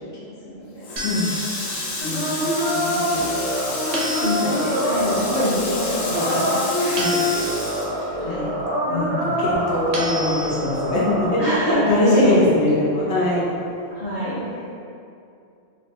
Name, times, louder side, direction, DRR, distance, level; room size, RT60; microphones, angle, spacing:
Water tap faucet, 0.8-8.7 9.0-10.3, left 2 dB, 90° left, 1.0 m, -31 dB
sound 1, 1.0-1.9 3.9-4.8 7.0-7.9 9.9-10.8, equal, 75° right, 0.9 m, -31 dB
voice 1, 2.0-3.3 4.1-6.5 6.8-7.2 8.3-8.5 9.1-9.6 11.4-12.6 13.9-14.4, equal, 45° left, -13 dB, 0.5 m, -25 dB
sound 2, 2.0-11.3, equal, 45° right, 0.6 m, -25 dB
voice 2, 8.2-8.5 8.9-13.5, left 2 dB, 65° left, -6 dB, 0.9 m, -22 dB
2.8 x 2.1 x 3.3 m, 2.6 s
omnidirectional pair, 1.3 m